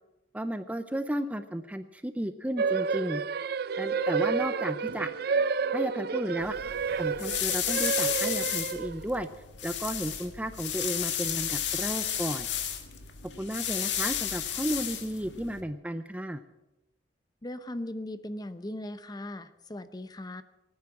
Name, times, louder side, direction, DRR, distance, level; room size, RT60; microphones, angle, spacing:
voice 1, 0.3-3.2 3.8-5.1 5.7-6.6 7.0-9.3 9.6-12.5 13.4-16.4, right 1 dB, 10° right, 10 dB, 0.5 m, -33 dB
sound 1, 2.6-9.1, right 5 dB, 60° right, 0.5 m, -30 dB
sound 2, 6.4-15.6, left 9 dB, 80° left, 1.7 m, -33 dB
voice 2, 17.4-20.4, left 1 dB, 20° left, 12 dB, 0.7 m, -38 dB
18.5 x 9.7 x 7.2 m, 1.0 s
head